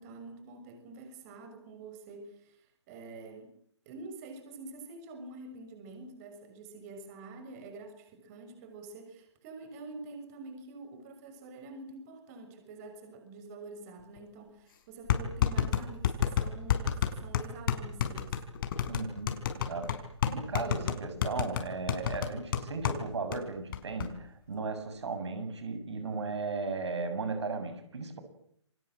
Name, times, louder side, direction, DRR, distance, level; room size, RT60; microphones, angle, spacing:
voice 1, 0.0-3.5 3.8-18.4, right 3 dB, 30° right, 7 dB, 6.4 m, -47 dB
sound 1, 14.2-14.3 15.1-23.0 23.3-23.4 23.7-24.1, left 9 dB, 45° left, 5.4 m, -29 dB
voice 2, 18.9-19.9 20.3-28.2, right 4 dB, 65° right, 8 dB, 7.5 m, -36 dB
28.5 x 24.0 x 7.8 m, 0.69 s
figure-of-eight pair, 140°, 15 cm